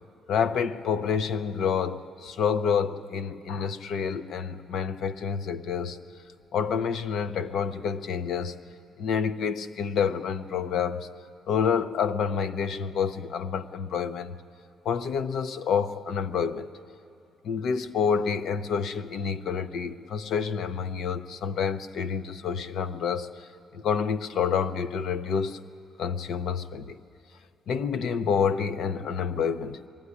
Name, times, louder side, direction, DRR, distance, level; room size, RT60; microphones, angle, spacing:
voice 1, 0.3-6.0 6.5-8.6 9.0-11.1 11.5-14.4 14.8-16.7 17.4-25.6 26.0-27.0 27.7-29.8, left 6 dB, 55° left, 11 dB, 0.7 m, -28 dB
21.0 x 14.5 x 9.8 m, 2.4 s
cardioid pair, 170°, 0 cm